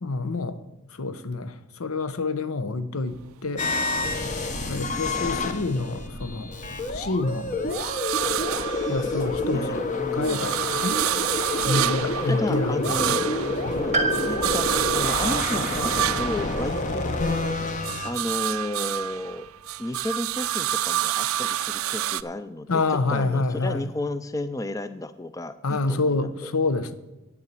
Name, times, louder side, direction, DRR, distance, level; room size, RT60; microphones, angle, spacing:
voice 1, 0.0-0.6 0.9-3.7 4.6-6.5 6.9-7.5 8.9-9.9 10.1-11.0 11.7-13.3 13.6-13.8 22.7-23.9 25.6-26.9, left 3 dB, 85° left, 0.8 m, -27 dB
sound 1, 3.1-5.5 5.9-9.5 9.9-17.3 17.7-22.2, right 12 dB, 80° right, 0.4 m, -29 dB
sound 2, 3.6-18.1, left 2 dB, 35° left, 0.9 m, -28 dB
voice 2, 8.8-10.6 11.8-12.0 12.3-13.2 13.8-19.5 19.8-26.5, left 1 dB, 15° left, 0.3 m, -33 dB
Piano, 13.9-17.8 18.1-18.2 19.3-19.4, right 2 dB, 30° right, 0.8 m, -32 dB
8.9 x 7.0 x 8.2 m
head